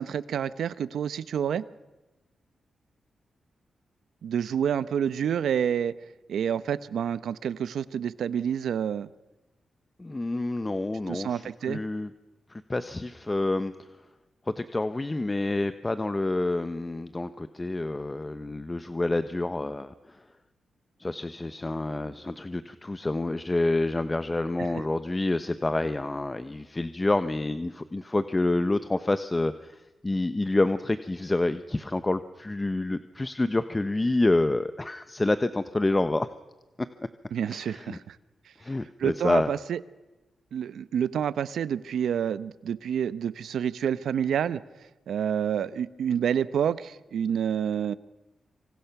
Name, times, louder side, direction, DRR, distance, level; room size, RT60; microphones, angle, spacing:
voice 1, 0.0-1.6 4.2-5.9 6.3-9.1 11.1-11.8 37.3-38.2 39.0-39.8 40.5-44.6 45.1-47.9, right 8 dB, 85° right, 16 dB, 0.8 m, -28 dB
voice 2, 10.0-12.1 12.5-13.9 14.5-20.2 21.0-36.3 37.0-37.1 37.5-38.0 38.6-39.5, left 2 dB, 25° left, 11 dB, 1.0 m, -28 dB
26.5 x 25.5 x 6.0 m, 1.1 s
cardioid pair, 70°, 0 cm